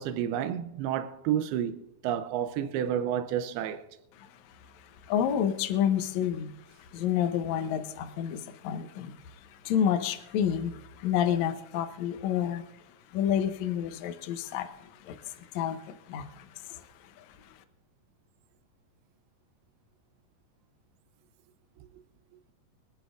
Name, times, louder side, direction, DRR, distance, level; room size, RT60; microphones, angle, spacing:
voice 1, 0.0-3.8, right 10 dB, 85° right, 2.6 m, -30 dB
voice 2, 4.1-12.7 13.1-17.6, left 9 dB, 90° left, 1.6 m, -30 dB
24.0 x 10.5 x 2.5 m
omnidirectional pair, 4.4 m